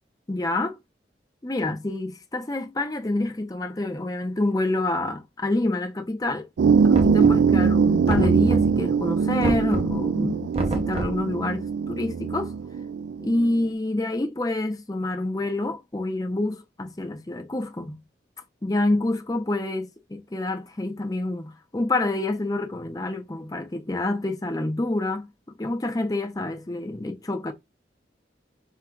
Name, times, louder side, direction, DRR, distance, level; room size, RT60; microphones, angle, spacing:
voice 1, 0.3-0.8 1.4-6.5 6.9-12.5 13.2-18.0 18.6-25.3 25.6-27.5, left 2 dB, 20° left, 0.6 m, -27 dB
sound 1, 6.6-13.6, right 6 dB, 75° right, 0.3 m, -22 dB
Knock, 6.9-7.6 8.1-8.9 9.4-10.0 10.5-11.3, right 2 dB, 30° right, 0.6 m, -29 dB
3.7 x 2.3 x 4.4 m
head